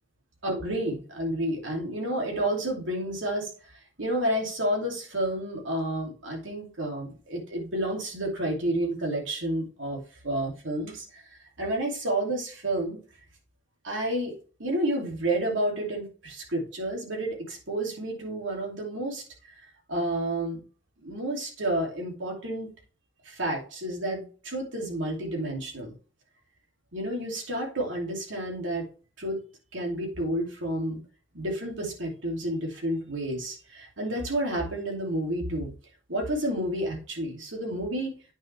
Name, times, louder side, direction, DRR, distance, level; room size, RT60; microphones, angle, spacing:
voice 1, 0.4-10.0 10.2-11.2 11.6-13.0 13.8-14.3 14.6-19.2 19.5-19.6 19.9-20.6 21.0-22.7 23.2-25.9 26.9-28.9 29.2-29.4 29.7-31.0 31.3-35.7 36.1-38.2, right 1 dB, 80° right, 0 dB, 2.8 m, -30 dB
9.0 x 6.3 x 3.4 m, 0.38 s
head